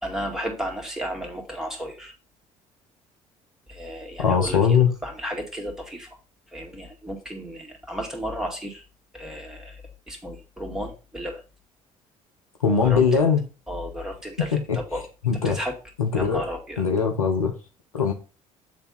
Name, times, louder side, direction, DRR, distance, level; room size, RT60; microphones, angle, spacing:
voice 1, 0.0-2.1 3.7-6.1 6.5-8.8 9.1-9.8 10.1-11.4 12.8-13.2 13.7-15.1 15.4-15.7 16.1-16.8, equal, 5° right, 1 dB, 2.0 m, -33 dB
voice 2, 4.2-4.9 12.6-13.4 14.5-14.8 15.2-15.6 16.0-16.4 16.8-17.5 17.9-18.1, left 6 dB, 85° left, 3 dB, 0.8 m, -21 dB
8.4 x 3.4 x 4.1 m, 0.34 s
figure-of-eight pair, 55°, 18 cm